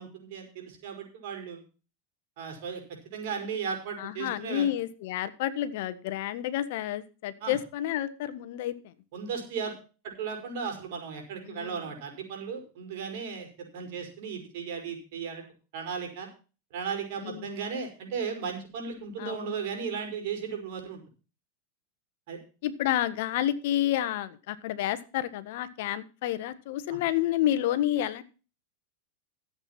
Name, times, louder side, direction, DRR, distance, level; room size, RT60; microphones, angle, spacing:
voice 1, 0.0-1.6 2.4-2.8 3.1-4.7 7.4-7.6 9.1-9.7 10.0-15.5 15.7-16.3 16.7-21.0 22.3-22.4 26.9-27.0, right 6 dB, 65° right, 3 dB, 5.5 m, -36 dB
voice 2, 4.0-8.7 11.5-11.8 17.2-17.5 19.2-19.6 22.6-28.2, left 12 dB, 65° left, 12 dB, 1.4 m, -30 dB
13.5 x 8.1 x 5.8 m, 0.35 s
hypercardioid pair, 100°, 0 cm